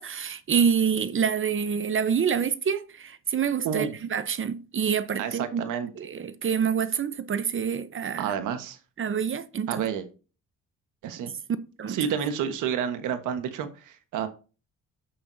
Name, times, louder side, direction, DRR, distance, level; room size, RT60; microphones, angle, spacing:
voice 1, 0.0-5.6 6.0-8.3 9.0-9.9 11.8-12.0, right 7 dB, 45° right, 0.9 m, -27 dB
voice 2, 3.6-4.0 5.2-5.9 8.2-8.8 9.7-10.1 11.0-11.3 11.9-14.3, right 8 dB, 90° right, 1.3 m, -29 dB
8.5 x 7.6 x 2.7 m
cardioid pair, 90°, 30 cm